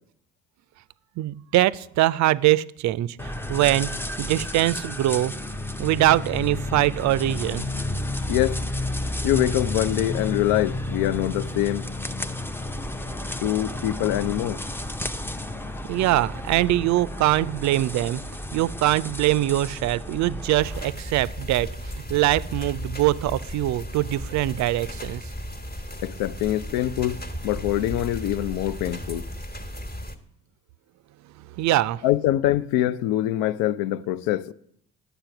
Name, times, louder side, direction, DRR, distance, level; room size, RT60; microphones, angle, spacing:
voice 1, 1.2-3.9 4.2-5.3 5.8-7.7 15.9-18.2 18.5-25.2 31.6-32.0, right 15 dB, 50° right, 0.4 m, -23 dB
sound 1, 3.2-20.8, left 1 dB, 5° left, 0.5 m, -32 dB
voice 2, 8.3-8.6 9.2-11.9 13.4-14.6 26.0-27.2 27.4-29.3 32.0-34.5, left 13 dB, 65° left, 0.5 m, -24 dB
sound 2, 20.6-30.2, equal, 25° left, 1.3 m, -35 dB
8.9 x 6.9 x 5.8 m
hypercardioid pair, 55°, 38 cm